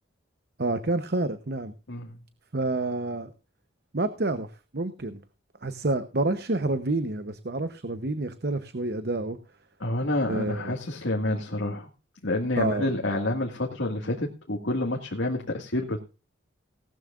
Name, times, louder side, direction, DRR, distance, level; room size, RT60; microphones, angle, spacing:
voice 1, 0.6-1.7 2.5-3.3 3.9-5.2 5.6-9.4 10.3-10.8 12.6-12.9, right 2 dB, 55° right, 10 dB, 0.9 m, -28 dB
voice 2, 9.8-11.9 12.2-16.0, left 1 dB, 80° left, 1 dB, 2.0 m, -28 dB
18.0 x 12.5 x 2.5 m, 0.32 s
head